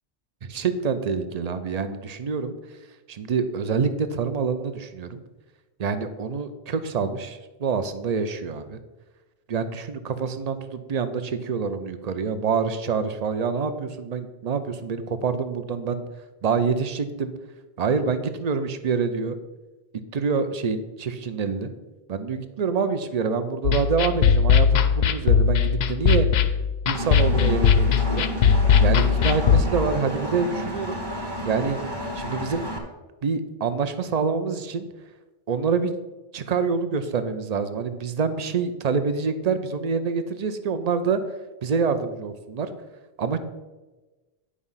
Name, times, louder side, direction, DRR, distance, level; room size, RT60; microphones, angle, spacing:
voice 1, 0.4-2.5 3.1-5.2 5.8-8.8 9.5-16.0 16.4-17.3 17.8-19.4 20.1-21.7 22.1-26.3 26.9-28.3 28.8-31.0 31.4-31.8 32.1-32.7 33.2-34.9 35.5-35.9 36.3-41.2 41.6-42.7 43.2-43.4, right 5 dB, 45° right, 10 dB, 0.7 m, -26 dB
sound 1, 23.6-29.6, left 7 dB, 80° left, 0.9 m, -19 dB
Engine, 26.9-32.8, equal, 25° right, 1.4 m, -31 dB
10.0 x 4.9 x 5.6 m, 1.2 s
omnidirectional pair, 1.1 m